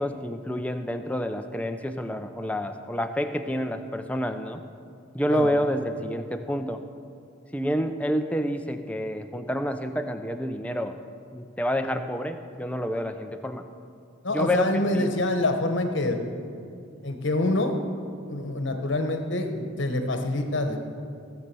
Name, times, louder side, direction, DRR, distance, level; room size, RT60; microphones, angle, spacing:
voice 1, 0.0-4.6 5.1-6.8 7.5-11.0 11.3-13.6 14.3-14.7 14.9-15.1, equal, 5° left, 6 dB, 0.5 m, -28 dB
voice 2, 14.2-16.2 17.0-17.8 18.3-20.8, left 2 dB, 60° left, 6 dB, 1.1 m, -26 dB
16.5 x 6.7 x 6.9 m, 2.5 s
head